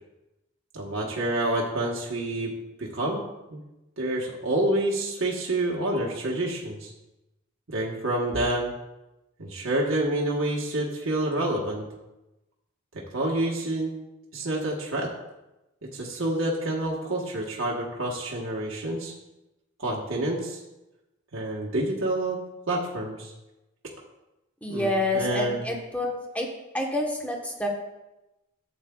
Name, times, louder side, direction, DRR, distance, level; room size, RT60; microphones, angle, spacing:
voice 1, 0.7-2.5 2.8-3.2 3.5-3.6 4.0-6.9 7.7-8.7 9.4-11.8 12.9-13.9 14.3-15.1 15.9-19.1 19.8-20.6 21.3-22.4 22.7-23.3 24.7-25.6, right 1 dB, 65° right, -3 dB, 1.2 m, -28 dB
voice 2, 24.6-26.5 26.7-27.7, left 1 dB, 5° left, 0 dB, 1.1 m, -28 dB
12.0 x 8.1 x 2.3 m, 0.99 s
head